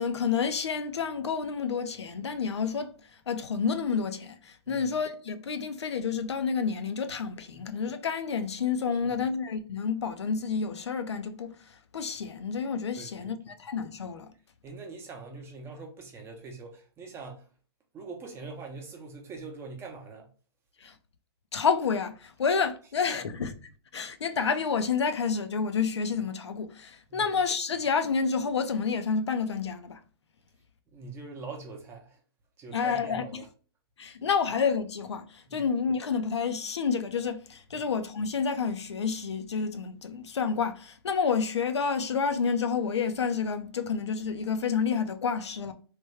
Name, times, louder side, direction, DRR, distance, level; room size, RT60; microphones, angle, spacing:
voice 1, 0.0-14.3 20.8-20.9 21.5-30.0 32.7-33.4 34.0-45.7, left 6 dB, 85° left, 0.5 m, -29 dB
voice 2, 8.9-9.3 13.0-13.3 14.6-17.5 17.9-20.3 23.1-23.2 27.1-27.3 30.9-32.2 32.6-33.5 35.5-35.7 37.7-37.8, right 4 dB, 15° right, 0.7 m, -43 dB
3.2 x 2.2 x 3.1 m
hypercardioid pair, 135°, 14 cm